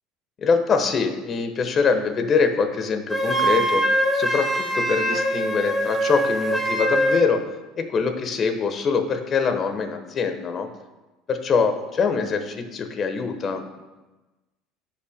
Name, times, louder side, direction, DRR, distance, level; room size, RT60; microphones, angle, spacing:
voice 1, 0.4-3.8 4.1-7.4 7.8-10.7 11.3-13.9, left 5 dB, 40° left, 7 dB, 1.1 m, -23 dB
Wind instrument woodwind instrument, 3.1-7.3, right 1 dB, 10° left, 1.7 m, -23 dB
14.5 x 5.9 x 2.2 m, 1.1 s
hypercardioid pair, 75°, 0 cm